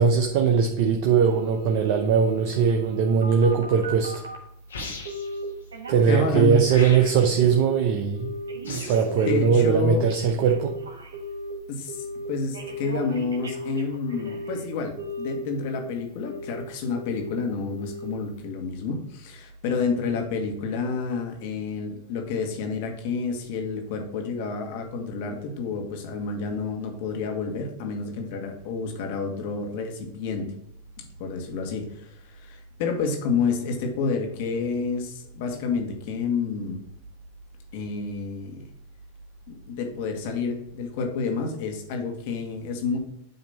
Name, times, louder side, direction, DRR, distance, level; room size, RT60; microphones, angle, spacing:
voice 1, 0.0-4.2 5.9-8.3 8.6-10.8, right 6 dB, 55° right, 0.7 m, -21 dB
Telephone, 1.2-4.5 5.1-5.4 5.7-7.1 7.4-7.8 8.1-11.5 11.9-12.3 12.5-14.6 15.0-15.8 16.2-16.6 16.9-17.3 17.7-18.1 18.4-18.5, right 1 dB, 90° right, 1.2 m, -36 dB
sound 1, 4.7-5.4 6.7-7.4 8.6-9.1, left 3 dB, 90° left, 1.5 m, -37 dB
voice 2, 6.1-6.6 8.8-8.9 9.2-10.0 11.7-30.5 31.0-36.8 37.7-38.7 39.5-43.0, left 4 dB, 60° left, 1.4 m, -29 dB
7.9 x 2.9 x 5.5 m
hypercardioid pair, 105°, 0 cm